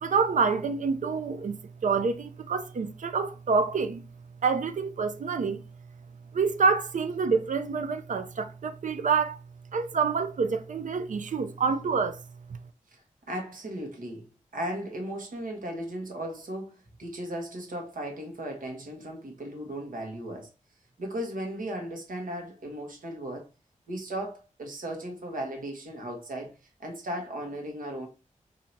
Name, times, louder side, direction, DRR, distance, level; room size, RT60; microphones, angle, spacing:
voice 1, 0.0-1.6 1.8-4.0 4.4-5.6 6.3-9.4 9.7-12.2, right 5 dB, 70° right, 0.5 m, -27 dB
voice 2, 13.3-14.3 14.5-16.7 17.0-20.5 21.0-23.5 23.9-28.1, right 1 dB, 85° right, 1.2 m, -36 dB
2.7 x 2.7 x 4.4 m
wide cardioid pair, 95°, 14 cm